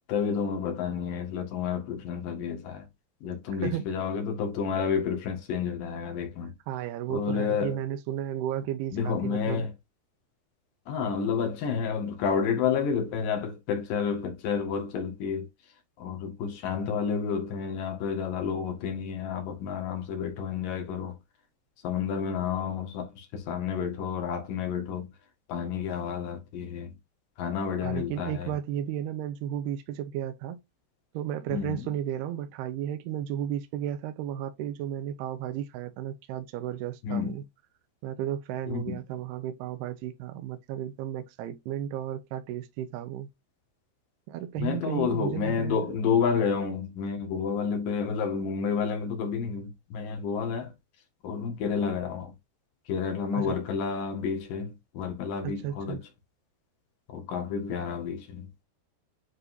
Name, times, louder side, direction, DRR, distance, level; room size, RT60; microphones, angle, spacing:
voice 1, 0.1-2.9 3.2-6.5 7.1-7.8 8.9-9.7 10.9-15.5 16.0-21.2 21.8-25.1 25.5-26.9 27.4-28.5 31.5-31.8 37.0-37.3 38.7-39.0 44.6-50.7 51.2-52.3 52.9-56.0 57.1-58.6, left 6 dB, 60° left, 3.1 m, -30 dB
voice 2, 3.6-4.1 6.7-9.7 27.8-30.6 31.1-37.4 38.0-43.3 44.3-45.9 53.3-53.6 55.4-56.0, right 11 dB, 80° right, 2.8 m, -34 dB
9.9 x 4.0 x 2.7 m
omnidirectional pair, 4.8 m